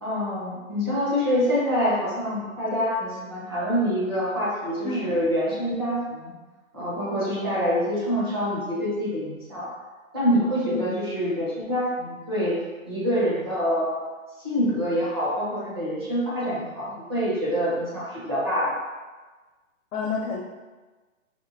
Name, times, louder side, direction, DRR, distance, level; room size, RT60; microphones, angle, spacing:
voice 1, 0.0-6.3 6.7-9.7 10.1-12.6 12.8-14.0 14.4-18.7, equal, 20° right, -8 dB, 0.5 m, -26 dB
voice 2, 4.8-5.2 10.7-11.1 19.9-20.4, left 4 dB, 75° left, 0 dB, 0.6 m, -30 dB
4.3 x 2.6 x 2.6 m, 1.3 s
hypercardioid pair, 170°, 41 cm